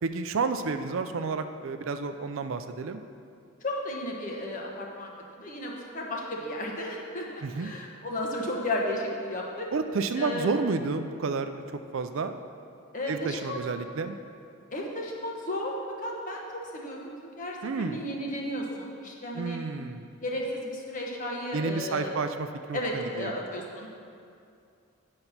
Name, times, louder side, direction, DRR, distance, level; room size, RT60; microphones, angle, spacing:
voice 1, 0.0-3.0 7.4-7.7 9.7-11.6 11.9-12.3 13.1-14.2 17.6-18.0 19.3-20.1 21.5-23.4, right 4 dB, 65° right, 9 dB, 0.4 m, -30 dB
voice 2, 3.6-5.1 5.4-9.7 10.1-10.5 12.9-13.6 14.7-19.6 20.2-22.2 22.7-23.9, left 1 dB, 35° left, -1 dB, 1.2 m, -34 dB
9.8 x 5.4 x 5.8 m, 2.5 s
head